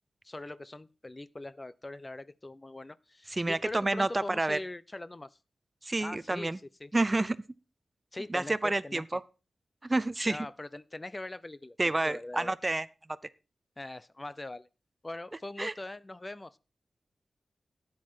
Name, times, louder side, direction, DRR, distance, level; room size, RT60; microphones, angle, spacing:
voice 1, 0.2-5.4 6.0-6.5 6.8-6.9 8.1-9.0 10.2-12.5 13.8-14.7 15.0-16.6, left 2 dB, 25° left, 17 dB, 0.6 m, -42 dB
voice 2, 3.3-4.6 5.8-6.6 6.9-7.4 8.3-9.2 9.8-10.5 11.8-12.9 15.6-15.7, right 2 dB, 25° right, 17 dB, 0.6 m, -29 dB
13.0 x 9.5 x 4.5 m, 0.32 s
wide cardioid pair, 85°, 0 cm